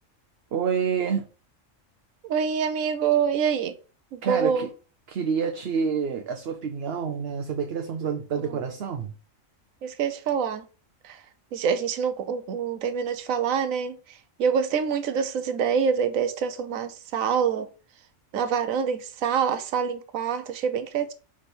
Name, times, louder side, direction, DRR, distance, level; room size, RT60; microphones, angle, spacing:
voice 1, 0.5-1.2 4.2-4.7 5.1-9.1, right 6 dB, 55° right, 0.8 m, -28 dB
voice 2, 2.2-3.7 4.1-4.7 8.4-8.6 9.8-10.6 11.0-11.2 11.5-14.0 14.4-17.7 18.3-21.1, right 7 dB, 90° right, 1.1 m, -26 dB
5.2 x 5.0 x 4.3 m
omnidirectional pair, 1.4 m